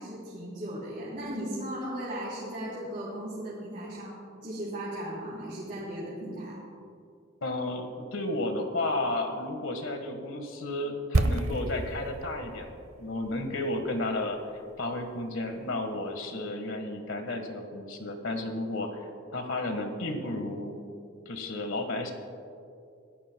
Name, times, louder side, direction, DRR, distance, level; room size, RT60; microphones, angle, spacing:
voice 1, 0.0-4.1 4.4-6.6, right 1 dB, 40° right, -9 dB, 3.3 m, -36 dB
voice 2, 7.4-12.7 13.0-14.4 14.8-20.8 21.2-22.1, left 2 dB, 75° left, 6 dB, 1.6 m, -32 dB
sound 1, 11.1-15.1 15.3-15.5, right 2 dB, 85° right, 0.8 m, -31 dB
24.5 x 14.0 x 2.3 m, 2.5 s
head